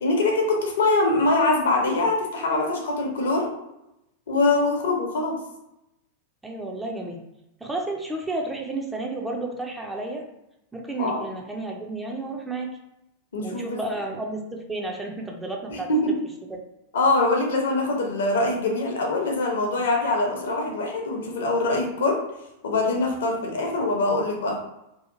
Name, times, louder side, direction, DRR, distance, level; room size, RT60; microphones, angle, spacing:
voice 1, 0.0-3.5 4.3-5.4 11.0-11.2 13.3-13.8 15.7-16.1 16.9-22.2 22.6-24.5, left 2 dB, 65° left, 0 dB, 0.7 m, -23 dB
voice 2, 6.4-7.2 7.6-10.2 10.7-12.7 13.4-15.9 16.5-16.6, right 2 dB, 10° right, 1 dB, 0.4 m, -31 dB
2.7 x 2.3 x 2.6 m, 0.87 s
figure-of-eight pair, 90°, 0 cm